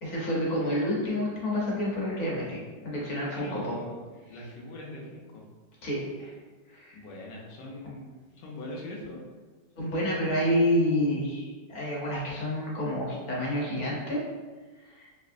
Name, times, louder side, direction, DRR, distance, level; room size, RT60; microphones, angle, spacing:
voice 1, 0.0-3.8 5.8-6.3 6.7-7.0 9.8-14.2 14.8-15.1, left 1 dB, 55° left, -5 dB, 1.2 m, -29 dB
voice 2, 3.3-4.0 4.3-5.5 6.9-9.2, left 1 dB, 80° left, -3 dB, 1.4 m, -41 dB
3.5 x 3.0 x 2.4 m, 1.3 s
omnidirectional pair, 1.9 m